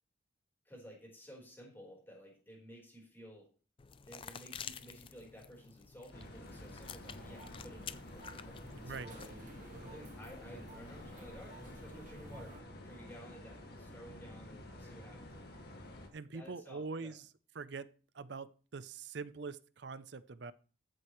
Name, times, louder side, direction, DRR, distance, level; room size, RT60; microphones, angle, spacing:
voice 1, 0.6-3.5 4.1-8.6 8.8-9.3 9.9-12.6 12.8-15.6 16.3-17.1, equal, 10° left, 4.1 m, -54 dB
sound 1, 3.8-9.4, left 7 dB, 25° left, 0.4 m, -50 dB
sound 2, 6.1-16.1, left 1 dB, 55° left, 2.0 m, -50 dB
sound 3, 6.9-12.6, right 2 dB, 40° right, 1.2 m, -54 dB
voice 2, 16.1-17.3 17.5-20.5, right 4 dB, 60° right, 0.6 m, -44 dB
14.0 x 7.7 x 3.1 m
head